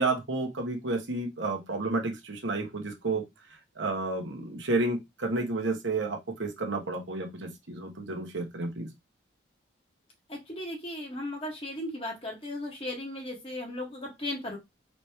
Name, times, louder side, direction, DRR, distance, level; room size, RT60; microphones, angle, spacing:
voice 1, 0.0-3.2 3.7-8.9, right 2 dB, 85° right, 1.2 m, -31 dB
voice 2, 10.3-14.6, left 1 dB, 30° left, 1.6 m, -36 dB
4.2 x 3.0 x 3.3 m
head